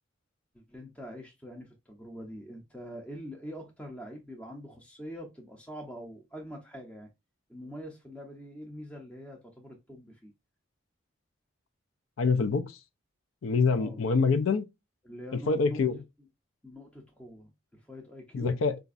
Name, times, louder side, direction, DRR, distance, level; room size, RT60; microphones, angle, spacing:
voice 1, 0.5-7.1 7.5-10.3 13.7-14.0 15.0-15.8 16.6-18.5, equal, 5° left, 0.5 m, -44 dB
voice 2, 12.2-12.8 13.4-14.7 15.5-16.0 18.3-18.8, left 4 dB, 85° left, 0.5 m, -25 dB
3.9 x 2.4 x 2.4 m
head